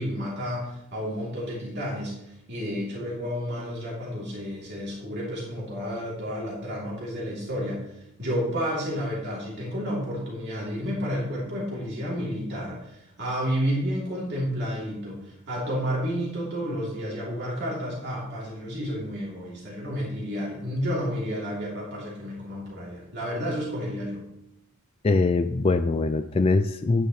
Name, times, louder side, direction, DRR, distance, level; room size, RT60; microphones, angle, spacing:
voice 1, 0.0-24.2, equal, 50° right, -5 dB, 3.0 m, -31 dB
voice 2, 25.0-27.1, left 3 dB, 25° left, 8 dB, 0.3 m, -22 dB
12.5 x 9.5 x 3.2 m, 0.83 s
head